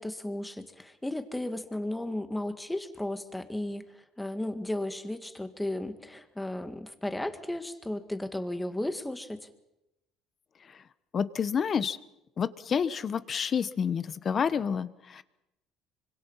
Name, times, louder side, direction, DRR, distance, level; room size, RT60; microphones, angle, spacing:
voice 1, 0.0-9.5, left 1 dB, 5° left, 8 dB, 2.0 m, -34 dB
voice 2, 11.1-12.0 12.4-15.2, left 7 dB, 35° left, 15 dB, 1.1 m, -29 dB
25.0 x 25.0 x 5.7 m, 0.90 s
cardioid pair, 110°, 0 cm